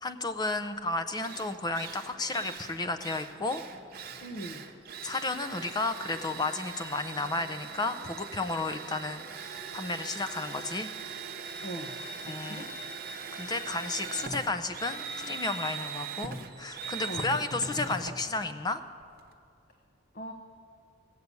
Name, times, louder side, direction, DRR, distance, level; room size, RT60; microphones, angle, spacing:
voice 1, 0.0-3.6 5.0-10.9 12.2-12.8 13.3-18.8, left 3 dB, 20° left, 9 dB, 0.5 m, -33 dB
Drill, 0.8-0.9 1.2-19.3, right 5 dB, 50° right, 0.9 m, -41 dB
voice 2, 4.2-4.7 11.6-12.0 12.4-12.6 17.1-17.3 20.1-20.3, right 1 dB, 50° left, 2 dB, 0.9 m, -39 dB
16.0 x 6.7 x 8.3 m, 2.4 s
head